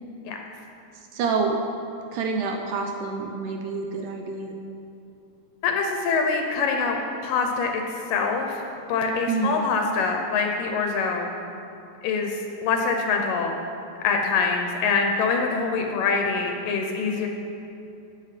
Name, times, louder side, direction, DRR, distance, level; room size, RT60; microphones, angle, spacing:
voice 1, 0.9-1.6 2.1-4.6 9.3-9.7, right 4 dB, 80° right, 3 dB, 1.8 m, -27 dB
voice 2, 5.6-7.0 7.2-7.8 8.1-8.6 8.9-11.3 12.0-13.6 14.0-17.3, left 4 dB, 75° left, 3 dB, 2.2 m, -24 dB
13.5 x 9.4 x 5.0 m, 2.8 s
omnidirectional pair, 4.4 m